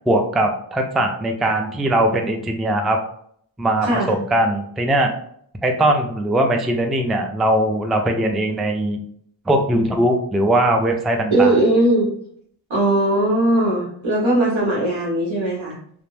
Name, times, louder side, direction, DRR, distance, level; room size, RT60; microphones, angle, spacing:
voice 1, 0.1-3.0 3.6-5.1 5.6-9.0 9.5-11.6, right 1 dB, ahead, 3 dB, 0.3 m, -20 dB
voice 2, 3.8-4.1 11.3-12.1 12.7-15.7, right 1 dB, 75° right, -6 dB, 1.1 m, -19 dB
2.4 x 2.1 x 3.2 m, 0.64 s
cardioid pair, 45°, 47 cm